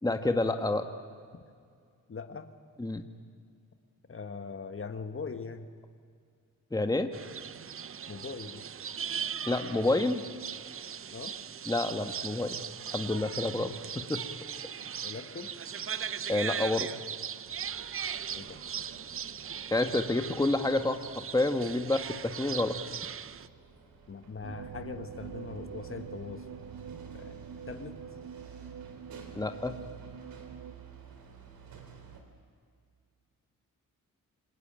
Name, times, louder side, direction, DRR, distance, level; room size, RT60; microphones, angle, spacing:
voice 1, 0.0-0.8 2.8-3.0 6.7-7.1 9.5-10.2 11.7-12.6 12.9-14.2 16.3-16.9 19.7-22.8 29.3-29.8, left 2 dB, 10° left, 7 dB, 1.5 m, -29 dB
voice 2, 2.1-2.5 4.1-5.7 8.1-8.6 11.1-11.3 15.0-15.5 18.3-18.6 24.1-26.5 27.1-27.3 27.7-27.9, left 5 dB, 40° left, 8 dB, 1.6 m, -41 dB
sound 1, 7.1-23.5, right 8 dB, 40° right, 0.7 m, -39 dB
sound 2, 17.4-32.2, right 6 dB, 90° right, 3.3 m, -52 dB
sound 3, 24.4-30.7, right 6 dB, 65° right, 1.7 m, -45 dB
27.0 x 20.5 x 9.0 m, 2.2 s
cardioid pair, 80°, 34 cm